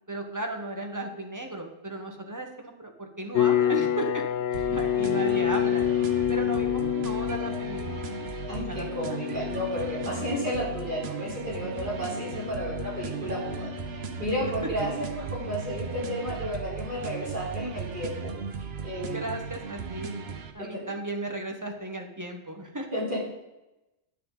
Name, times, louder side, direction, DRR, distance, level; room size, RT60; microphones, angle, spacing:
voice 1, 0.1-4.2 4.5-5.9 6.3-8.1 8.7-9.2 10.2-10.4 19.1-22.9, right 1 dB, 15° right, 4 dB, 1.1 m, -35 dB
sound 1, 3.3-14.4, left 10 dB, 65° left, 0.7 m, -29 dB
sound 2, 4.5-20.5, right 6 dB, 65° right, 1.1 m, -37 dB
voice 2, 8.5-18.3 18.8-19.3 20.6-20.9 22.9-23.2, equal, 45° right, -6 dB, 4.0 m, -32 dB
9.7 x 9.0 x 3.8 m, 0.97 s
omnidirectional pair, 1.1 m